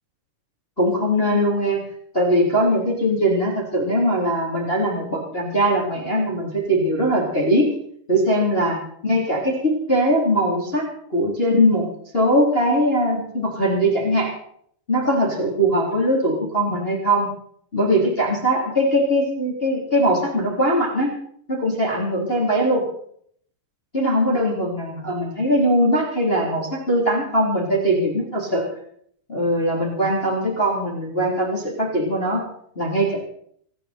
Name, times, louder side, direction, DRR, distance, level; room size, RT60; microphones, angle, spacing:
voice 1, 0.8-1.8 2.1-7.7 8.1-8.8 9.0-10.8 11.1-11.9 12.1-14.3 14.9-17.3 17.7-21.1 21.5-22.8 23.9-28.6 29.3-32.4 32.7-33.2, equal, 15° left, -3 dB, 3.4 m, -21 dB
27.5 x 10.0 x 4.5 m, 0.67 s
omnidirectional pair, 5.2 m